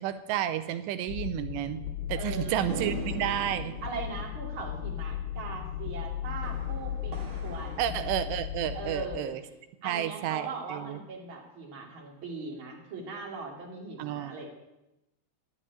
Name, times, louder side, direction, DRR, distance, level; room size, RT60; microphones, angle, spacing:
voice 1, 0.0-1.8 2.1-3.7 7.8-9.4 9.8-11.0 14.0-14.5, right 11 dB, 90° right, 11 dB, 2.9 m, -31 dB
sound 1, 1.1-9.2, left 10 dB, 85° left, 2.8 m, -36 dB
voice 2, 2.1-2.9 3.8-7.9 8.7-9.3 9.8-14.5, right 3 dB, 35° right, -1 dB, 2.8 m, -40 dB
sound 2, 2.7-9.2, right 4 dB, 60° right, 1.4 m, -43 dB
12.0 x 7.1 x 9.7 m, 0.93 s
omnidirectional pair, 4.9 m